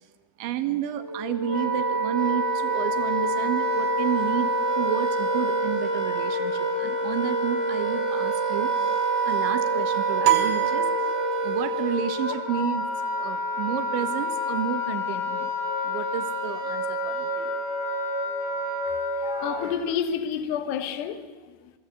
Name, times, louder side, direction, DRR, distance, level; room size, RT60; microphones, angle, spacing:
voice 1, 0.4-8.7 9.3-11.1 11.4-12.9 13.2-15.5 15.8-17.6, right 11 dB, 85° right, 3.8 m, -31 dB
Wind instrument woodwind instrument, 1.0-19.8, right 1 dB, 15° left, 3.5 m, -27 dB
sound 1, 10.2-11.7, right 10 dB, 65° right, 3.6 m, -26 dB
voice 2, 19.2-21.7, left 8 dB, 70° left, 3.4 m, -30 dB
27.5 x 21.5 x 8.2 m
omnidirectional pair, 5.3 m